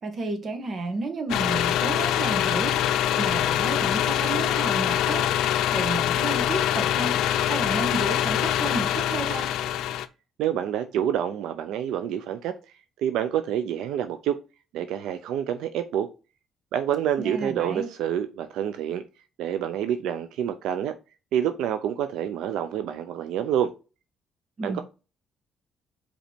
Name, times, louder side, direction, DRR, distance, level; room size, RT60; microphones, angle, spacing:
voice 1, 0.0-5.3 5.7-7.2 7.5-9.6 17.2-17.9 24.6-24.8, right 2 dB, 40° right, 1.7 m, -32 dB
sound 1, 1.3-10.1, left 11 dB, 85° left, 0.5 m, -24 dB
voice 2, 10.4-12.5 13.0-14.4 14.7-16.1 16.7-19.0 19.4-20.9 21.3-23.7 24.6-24.8, right 10 dB, 85° right, 0.6 m, -27 dB
5.3 x 4.3 x 5.1 m
cardioid pair, 105°, 0 cm